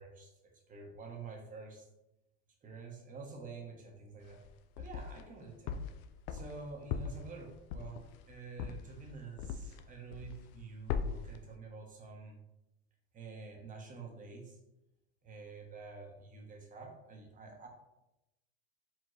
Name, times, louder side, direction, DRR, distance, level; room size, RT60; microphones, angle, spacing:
voice 1, 0.0-1.9 2.6-4.4 4.8-5.8 6.3-12.4 13.1-14.6 15.2-17.7, right 4 dB, 25° right, 1 dB, 1.0 m, -48 dB
sound 1, 4.2-5.3 5.7-9.9 10.1-10.6 10.9-11.4, left 7 dB, 45° left, 0.4 m, -39 dB
4.7 x 3.6 x 3.1 m, 0.93 s
supercardioid pair, 125°, 33 cm